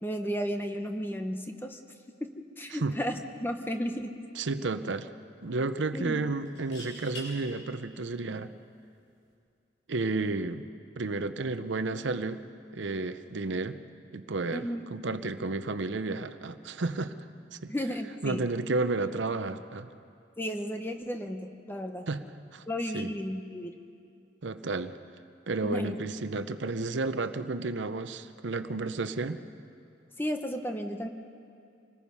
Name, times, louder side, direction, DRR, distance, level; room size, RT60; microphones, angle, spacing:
voice 1, 0.0-1.8 2.2-4.1 5.9-6.2 14.5-14.8 17.7-18.4 20.4-22.0 22.7-23.8 25.6-26.0 30.2-31.1, equal, 10° left, 5 dB, 0.9 m, -33 dB
sound 1, 3.6-3.8 4.2-4.3 6.5-7.3 9.1-9.3, equal, 85° left, 6.6 m, -44 dB
voice 2, 4.4-5.1 5.4-8.5 9.9-10.7 11.0-12.4 12.7-13.8 14.1-17.1 17.5-17.7 18.2-19.9 22.1-22.2 22.5-22.6 22.9-23.1 24.4-25.0 25.5-29.4, right 3 dB, 85° right, 11 dB, 0.7 m, -32 dB
26.5 x 19.0 x 5.6 m, 2.5 s
head